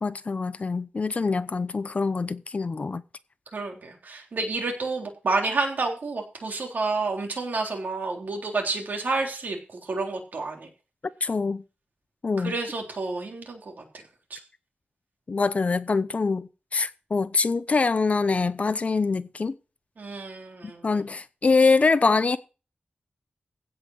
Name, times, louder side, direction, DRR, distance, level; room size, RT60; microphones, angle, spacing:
voice 1, 0.0-3.0 11.2-11.6 12.2-12.6 15.3-19.5 20.8-22.4, left 4 dB, 45° left, 0.6 m, -24 dB
voice 2, 3.5-10.7 12.4-13.8 14.3-14.4 20.0-21.0, right 3 dB, 60° right, 3.7 m, -30 dB
16.0 x 5.7 x 6.4 m
wide cardioid pair, 135°, 3 cm